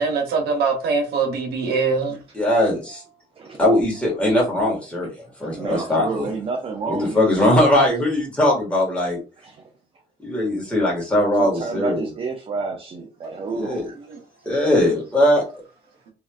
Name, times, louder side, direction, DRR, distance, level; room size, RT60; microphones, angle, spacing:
voice 1, 0.0-2.2, right 4 dB, 70° right, 0.9 m, -22 dB
voice 2, 2.3-3.0 3.6-5.1 5.4-6.3 6.9-9.2 10.2-12.1 13.5-13.8 14.4-15.4, left 1 dB, 5° left, 1.7 m, -20 dB
voice 3, 5.6-7.8 9.4-9.6 11.4-13.9 14.6-14.7, right 4 dB, 35° right, 0.5 m, -29 dB
3.0 x 2.8 x 2.4 m
cardioid pair, 110°, 17 cm